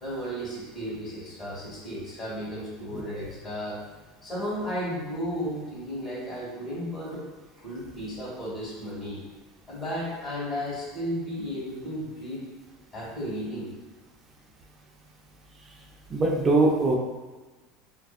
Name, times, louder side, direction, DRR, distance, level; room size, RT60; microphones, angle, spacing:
voice 1, 0.0-3.8 4.2-7.2 7.5-9.2 9.7-12.4 12.9-13.7, equal, 35° left, -8 dB, 1.3 m, -34 dB
voice 2, 2.9-3.3 16.1-17.0, right 2 dB, 30° right, 0 dB, 0.5 m, -23 dB
2.5 x 2.3 x 2.3 m, 1.2 s
hypercardioid pair, 95°, 0 cm